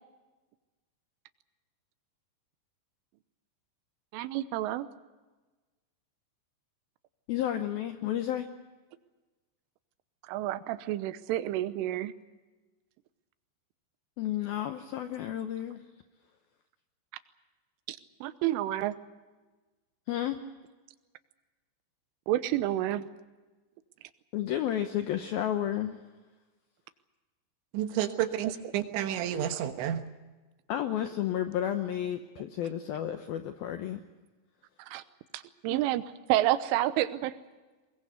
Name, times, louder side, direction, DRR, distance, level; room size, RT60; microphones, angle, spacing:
voice 1, 4.1-4.9 10.2-12.1 17.9-19.0 22.3-23.1 28.4-28.7 34.8-35.0 35.3-36.0 36.3-37.4, right 14 dB, 90° right, 13 dB, 3.5 m, -30 dB
voice 2, 7.3-8.5 14.2-15.8 20.1-20.4 24.3-26.0 30.7-34.0, left 11 dB, 80° left, 8 dB, 2.1 m, -32 dB
voice 3, 27.7-30.0, right 11 dB, 75° right, 8 dB, 3.5 m, -30 dB
21.5 x 21.5 x 8.0 m, 1.2 s
omnidirectional pair, 5.6 m